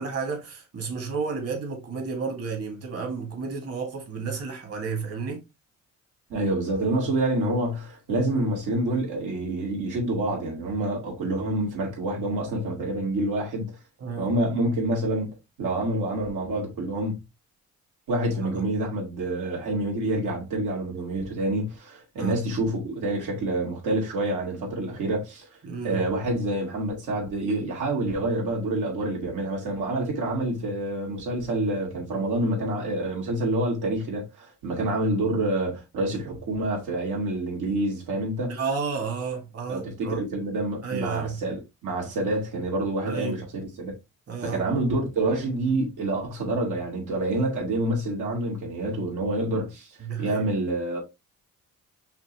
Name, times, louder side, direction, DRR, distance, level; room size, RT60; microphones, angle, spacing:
voice 1, 0.0-5.4 14.0-14.3 18.4-18.5 22.2-22.4 25.6-26.0 38.5-40.2 40.8-41.4 43.0-43.4 44.3-44.7 50.0-50.4, right 5 dB, 50° right, 1.9 m, -32 dB
voice 2, 6.3-13.7 14.2-17.2 18.1-25.5 25.8-38.5 39.7-43.9 44.4-49.9 50.2-51.0, right 1 dB, 85° right, 2.3 m, -27 dB
5.8 x 2.8 x 2.9 m
cardioid pair, 90°, 30 cm